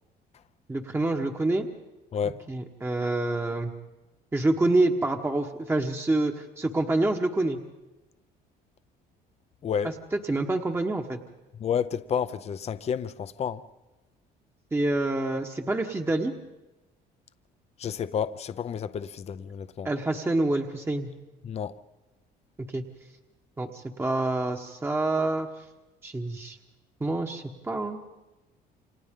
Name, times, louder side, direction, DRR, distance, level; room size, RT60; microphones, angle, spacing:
voice 1, 0.7-1.7 2.2-3.7 4.3-7.6 10.3-11.2 14.7-16.3 19.8-21.1 22.7-22.8 23.6-25.5 26.0-26.6 27.0-28.0, right 2 dB, 15° right, 1.2 m, -27 dB
voice 2, 2.1-2.4 9.6-9.9 11.5-13.6 17.8-19.9 21.4-21.8, left 7 dB, 40° left, 0.7 m, -30 dB
29.0 x 25.5 x 3.7 m
cardioid pair, 110°, 17 cm